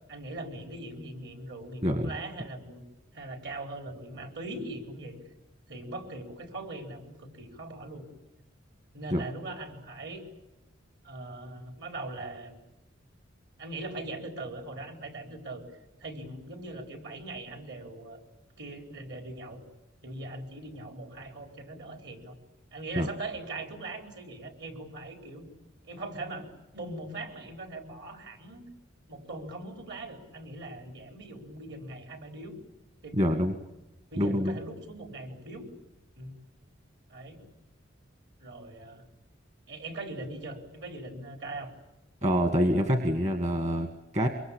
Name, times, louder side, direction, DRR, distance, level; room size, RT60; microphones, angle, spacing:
voice 1, 0.1-2.8 3.1-5.1 5.7-8.1 8.9-10.2 11.0-12.6 13.6-15.6 16.0-18.2 18.6-19.6 20.0-22.3 22.7-25.5 25.8-28.7 29.1-32.6 33.0-33.2 34.1-35.7 36.2-36.3 37.1-37.5 38.4-39.1 39.7-41.7, right 2 dB, 65° right, 4 dB, 4.4 m, -40 dB
voice 2, 1.8-2.1 9.1-9.2 23.0-23.1 33.1-33.5 34.2-34.6 42.2-44.3, equal, 35° right, 6 dB, 1.6 m, -26 dB
25.0 x 24.0 x 8.6 m, 0.95 s
head